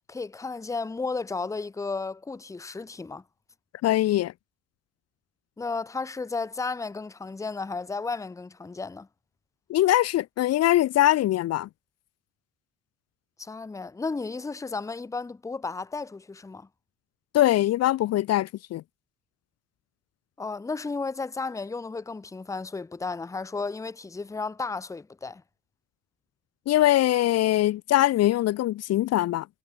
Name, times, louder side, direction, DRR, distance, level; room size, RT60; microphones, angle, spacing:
voice 1, 0.1-3.2 5.6-9.1 13.4-16.7 20.4-25.4, left 4 dB, 10° left, 0.9 m, -33 dB
voice 2, 3.8-4.3 9.7-11.7 17.3-18.8 26.7-29.5, left 14 dB, 55° left, 0.8 m, -22 dB
cardioid pair, 175°, 30 cm